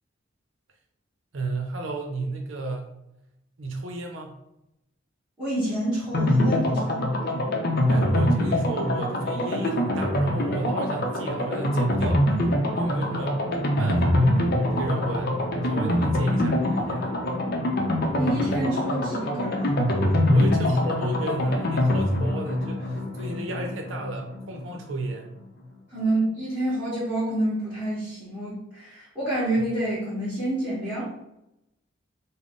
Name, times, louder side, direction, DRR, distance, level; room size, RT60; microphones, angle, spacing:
voice 1, 1.3-2.9 3.6-4.3 7.9-12.2 12.7-13.4 13.8-15.3 15.6-17.2 20.3-25.3, right 2 dB, 85° right, 2 dB, 0.6 m, -33 dB
voice 2, 5.4-7.2 18.1-19.8 25.9-31.0, right 1 dB, 5° right, -11 dB, 1.4 m, -28 dB
sound 1, 6.1-24.7 25.0-25.1 25.4-25.5, left 1 dB, 55° left, 0.6 m, -24 dB
3.7 x 2.1 x 3.7 m, 0.85 s
head